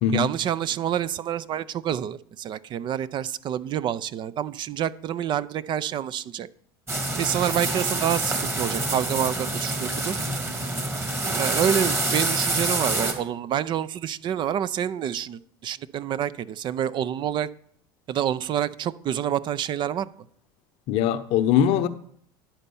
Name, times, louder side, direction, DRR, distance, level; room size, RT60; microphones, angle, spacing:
voice 1, 0.1-6.5 7.2-10.2 11.4-17.5 18.1-20.1, right 10 dB, 45° right, 0.5 m, -27 dB
sound 1, 6.9-13.1, right 2 dB, 20° right, 1.7 m, -26 dB
voice 2, 20.9-21.9, left 9 dB, 60° left, 0.7 m, -21 dB
10.5 x 4.3 x 6.9 m
hypercardioid pair, 85°, 11 cm